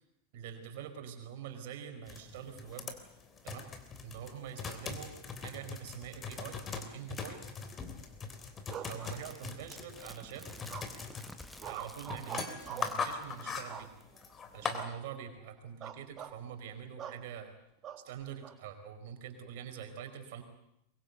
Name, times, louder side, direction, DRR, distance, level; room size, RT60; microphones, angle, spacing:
voice 1, 0.3-3.0 3.4-3.7 4.0-5.1 5.4-7.4 8.9-10.5 11.6-13.9 14.5-17.5 18.0-20.4, right 8 dB, 50° right, 6 dB, 4.8 m, -45 dB
sound 1, 2.1-14.8, left 5 dB, 20° left, 3.3 m, -41 dB
sound 2, 8.7-9.7 10.7-11.2 11.6-13.0 13.7-14.3 14.7-15.0 15.3-15.5 15.8-16.4 17.0-17.2 17.8-18.6, right 9 dB, 30° right, 1.5 m, -45 dB
sound 3, 9.1-13.7 14.0-14.1, equal, ahead, 1.4 m, -53 dB
24.0 x 23.0 x 8.2 m, 0.78 s
figure-of-eight pair, 90°, 0 cm